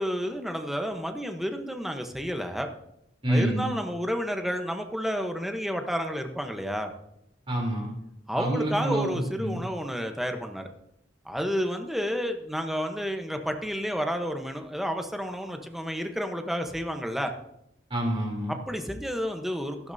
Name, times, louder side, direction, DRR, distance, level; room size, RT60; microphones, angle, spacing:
voice 1, 0.0-2.7 3.3-6.9 8.3-10.7 11.2-17.3 18.7-19.9, equal, ahead, 5 dB, 0.9 m, -30 dB
voice 2, 3.2-3.7 7.5-7.9 8.3-9.6 17.9-18.5, right 1 dB, 30° right, -1 dB, 3.3 m, -27 dB
14.0 x 12.0 x 2.7 m, 0.78 s
head